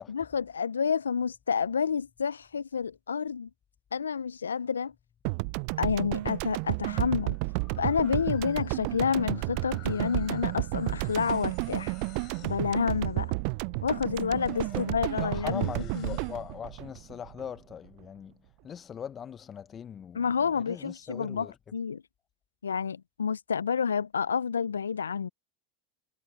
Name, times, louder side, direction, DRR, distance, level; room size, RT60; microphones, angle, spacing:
voice 1, 0.1-3.5 3.9-4.9 5.8-7.3 7.8-11.9 12.4-13.3 13.8-15.7 16.0-16.2 20.1-22.0 22.6-25.3, left 6 dB, 90° left, 0.3 m, -29 dB
sound 1, 5.3-17.7, right 33 dB, 60° right, 0.3 m, -32 dB
sound 2, 6.6-16.6, left 18 dB, 50° left, 6.3 m, -54 dB
voice 2, 15.2-18.4 18.6-21.6, left 8 dB, 30° left, 0.7 m, -41 dB
hypercardioid pair, 85°, 0 cm